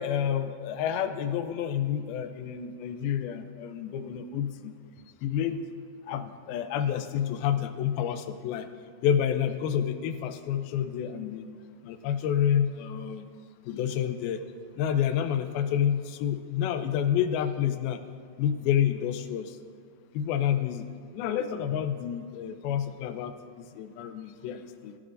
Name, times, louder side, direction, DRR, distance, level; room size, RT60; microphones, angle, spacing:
voice 1, 0.0-4.8 5.2-5.7 6.1-8.7 9.0-11.5 11.8-13.3 13.7-14.4 14.8-18.0 18.4-19.6 20.1-25.0, left 9 dB, 80° left, 9 dB, 2.4 m, -29 dB
22.5 x 12.0 x 2.6 m, 2.1 s
omnidirectional pair, 4.5 m